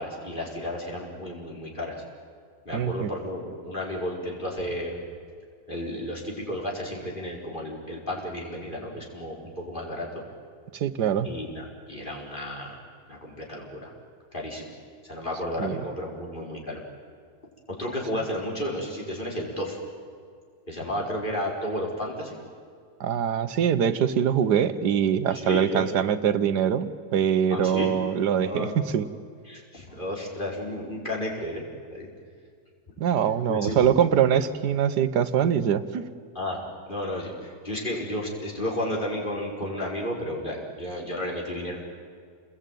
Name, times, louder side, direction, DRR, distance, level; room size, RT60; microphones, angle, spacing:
voice 1, 0.0-2.0 2.6-4.9 5.7-10.2 11.2-12.8 13.1-13.9 14.3-14.7 15.0-16.8 17.7-19.8 20.7-22.4 25.3-25.9 27.5-27.9 28.4-28.8 29.5-31.6 31.9-32.1 33.5-33.8 36.3-36.6 36.9-41.8, left 1 dB, 30° left, -2 dB, 5.0 m, -32 dB
voice 2, 2.7-3.1 10.7-11.3 15.6-15.8 23.0-29.1 33.0-36.0, right 8 dB, 85° right, 12 dB, 1.5 m, -23 dB
28.0 x 21.0 x 9.2 m, 2.1 s
omnidirectional pair, 1.7 m